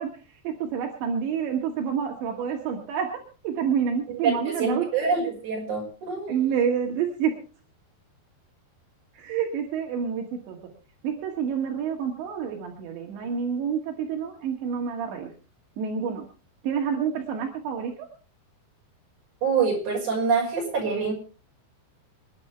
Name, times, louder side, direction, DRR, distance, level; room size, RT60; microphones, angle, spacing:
voice 1, 0.0-4.9 6.3-7.3 9.1-10.6 11.0-15.3 15.8-16.3 16.6-18.1, right 7 dB, 80° right, 2 dB, 4.3 m, -28 dB
voice 2, 4.1-6.4 19.4-21.1, right 5 dB, 45° right, 0 dB, 7.0 m, -26 dB
27.0 x 10.5 x 3.4 m, 0.35 s
omnidirectional pair, 5.1 m